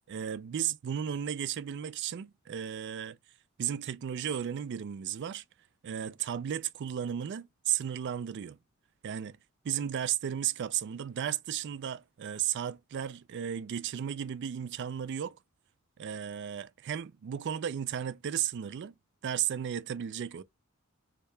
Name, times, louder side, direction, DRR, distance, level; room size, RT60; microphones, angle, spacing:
voice 1, 0.0-3.2 3.6-5.4 5.8-8.6 9.0-9.4 9.6-15.4 16.0-18.9 19.2-20.4, right 9 dB, 55° right, 0.3 m, -34 dB
3.2 x 2.8 x 3.2 m
head